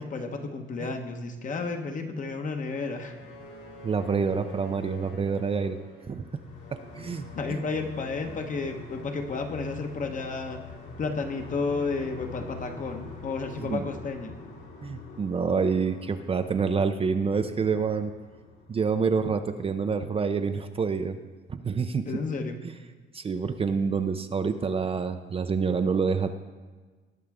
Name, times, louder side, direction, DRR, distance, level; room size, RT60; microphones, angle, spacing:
voice 1, 0.0-3.1 7.3-10.6 11.0-14.3 22.0-22.6, left 4 dB, 40° left, 5 dB, 1.1 m, -32 dB
sound 1, 2.5-19.4, left 3 dB, 70° left, 2.9 m, -44 dB
voice 2, 3.8-5.8 6.0-6.4 6.7-7.6 13.6-13.9 14.8-18.1 18.7-21.2 21.5-22.1 22.6-22.7 23.1-26.3, right 5 dB, 30° right, 8 dB, 0.5 m, -27 dB
18.5 x 6.5 x 3.6 m, 1.3 s
cardioid pair, 110°, 20 cm